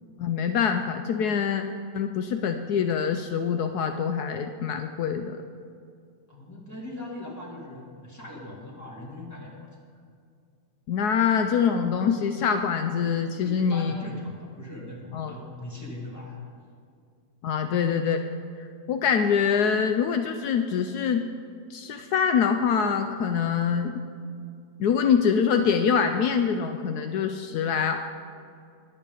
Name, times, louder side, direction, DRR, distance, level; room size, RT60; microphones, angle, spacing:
voice 1, 0.2-1.6 1.9-5.4 10.9-13.9 15.1-15.3 17.4-18.2 18.9-21.2 21.7-23.9 24.8-28.1, left 7 dB, 75° left, 6 dB, 1.1 m, -24 dB
voice 2, 6.3-9.7 13.4-16.4, left 1 dB, 10° left, -3 dB, 2.3 m, -40 dB
22.0 x 8.3 x 3.9 m, 2.3 s
omnidirectional pair, 1.7 m